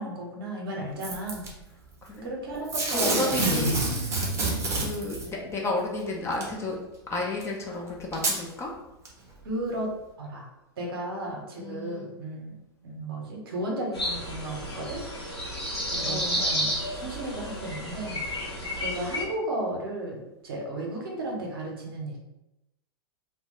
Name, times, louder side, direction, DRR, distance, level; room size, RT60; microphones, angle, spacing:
voice 1, 0.0-1.5 2.2-3.3 4.3-4.6 9.4-9.9 10.2-10.5 10.8-12.6 12.8-15.0 15.9-16.7 17.0-18.2 18.8-22.2, right 1 dB, 60° right, 0 dB, 0.7 m, -34 dB
Packing tape duct tape / Tearing, 1.0-1.5 2.7-5.3 6.4-6.5 7.4-7.5 8.1-8.4 9.0-9.1, right 2 dB, 20° right, 0.6 m, -27 dB
voice 2, 2.0-2.3 2.9-3.7 4.0-4.1 4.7-6.8 7.1-8.7 11.6-12.1 16.0-16.4, left 2 dB, 20° left, -1 dB, 0.4 m, -32 dB
sound 1, 13.9-19.2, equal, 90° left, 0.8 m, -31 dB
2.1 x 2.0 x 2.9 m, 0.92 s
figure-of-eight pair, 95°, 13 cm